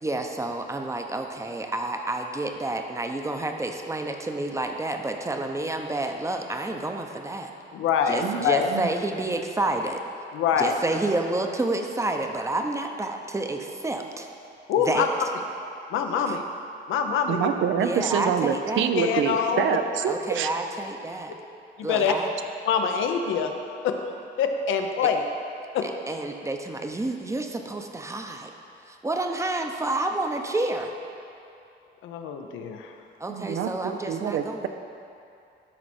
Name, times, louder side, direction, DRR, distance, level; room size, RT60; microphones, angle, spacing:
voice 1, 0.0-7.5 8.1-10.0 10.6-14.3 14.8-15.1 16.3-16.4 17.8-18.9 20.1-21.3 21.8-22.3 26.1-28.5 28.8-30.9 33.2-34.7, right 2 dB, 15° right, 4 dB, 0.7 m, -29 dB
voice 2, 7.7-8.7 10.3-10.8 14.7-15.1 15.9-16.4 16.9-17.5 18.8-19.6 21.8-22.1 22.7-23.5 23.8-23.9 24.4-25.2 25.7-25.9 32.0-33.0, left 7 dB, 85° left, 5 dB, 0.7 m, -25 dB
voice 3, 17.3-20.5 33.3-34.7, right 8 dB, 75° right, 7 dB, 0.6 m, -26 dB
12.5 x 4.4 x 4.3 m, 2.6 s
cardioid pair, 90°, 20 cm